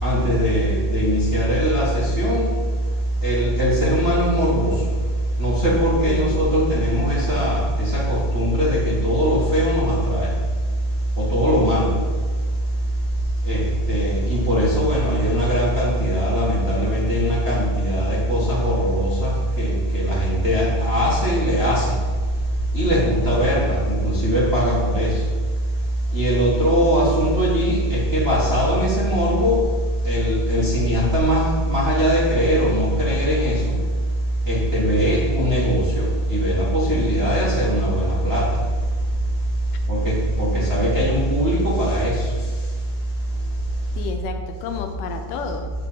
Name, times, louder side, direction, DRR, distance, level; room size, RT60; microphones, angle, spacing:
voice 1, 0.0-2.5 3.2-4.7 5.4-10.3 11.2-11.9 13.4-22.0 22.7-25.2 26.1-29.7 30.0-33.6 34.5-38.6 39.9-42.2, equal, 30° right, -6 dB, 1.2 m, -20 dB
voice 2, 6.1-6.4 44.0-45.7, left 5 dB, 85° left, 5 dB, 2.4 m, -31 dB
8.7 x 4.5 x 7.3 m, 1.5 s
omnidirectional pair, 3.6 m